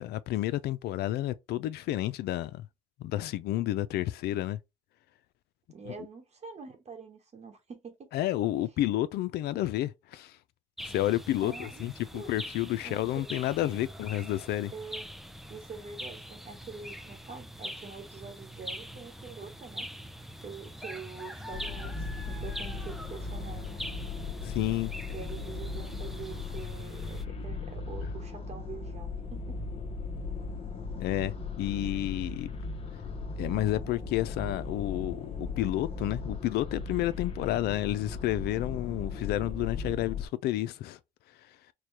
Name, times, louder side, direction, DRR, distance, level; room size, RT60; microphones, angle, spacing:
voice 1, 0.0-2.7 3.0-4.6 8.1-10.4 10.8-14.7 24.4-24.9 31.0-32.5 33.4-41.0, left 14 dB, 70° left, 0.4 m, -30 dB
voice 2, 5.7-8.1 11.4-11.9 12.1-12.3 12.8-13.3 14.7-15.1 15.5-19.9 20.4-23.8 25.1-29.6, right 5 dB, 40° right, 1.0 m, -45 dB
sound 1, 10.8-27.2, equal, ahead, 0.4 m, -43 dB
sound 2, 21.5-40.2, left 4 dB, 35° left, 0.8 m, -37 dB
4.5 x 2.2 x 3.2 m
cardioid pair, 110°, 17 cm